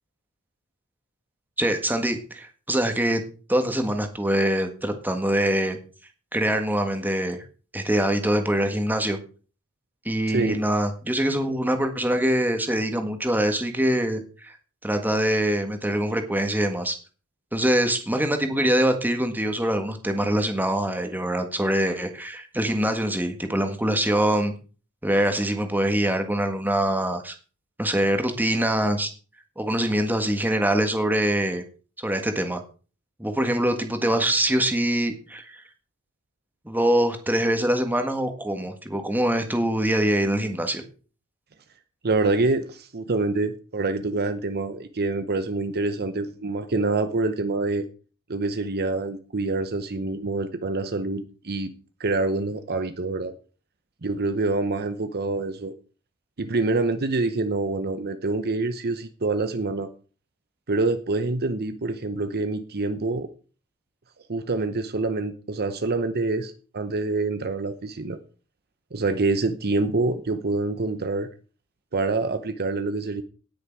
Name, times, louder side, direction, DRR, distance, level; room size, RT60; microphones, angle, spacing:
voice 1, 1.6-3.2 3.5-5.8 6.3-7.4 7.7-9.2 10.0-14.6 14.8-17.0 17.5-24.5 25.0-27.3 27.8-29.1 29.6-31.6 32.0-32.6 33.2-35.6 36.6-40.8, right 1 dB, 10° right, 6 dB, 1.6 m, -24 dB
voice 2, 42.0-47.8 48.3-51.7 52.0-53.3 54.0-55.7 56.4-59.9 60.7-63.3 64.3-68.2 68.9-71.3 71.9-73.2, right 3 dB, 45° right, 9 dB, 0.9 m, -26 dB
17.5 x 6.5 x 4.7 m, 0.38 s
head